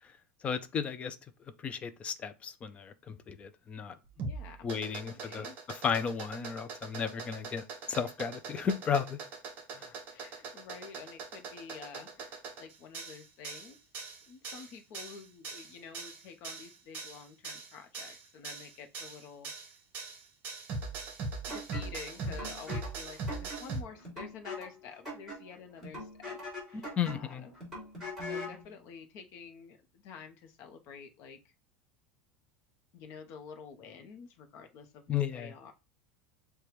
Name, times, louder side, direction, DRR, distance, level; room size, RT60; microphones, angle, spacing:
voice 1, 0.4-1.2 1.6-4.0 4.6-9.2 9.8-9.9 27.0-27.5 35.1-35.5, left 7 dB, 20° left, 0.4 m, -34 dB
sound 1, 4.1-23.8, right 3 dB, 30° right, 1.0 m, -41 dB
voice 2, 4.2-5.6 10.1-13.8 14.3-19.5 21.5-26.4 26.7-27.5 28.3-31.5 32.9-35.7, left 6 dB, 45° left, 0.7 m, -49 dB
sound 2, 21.5-28.6, left 1 dB, ahead, 2.5 m, -43 dB
6.6 x 2.2 x 3.0 m
supercardioid pair, 165°, 6 cm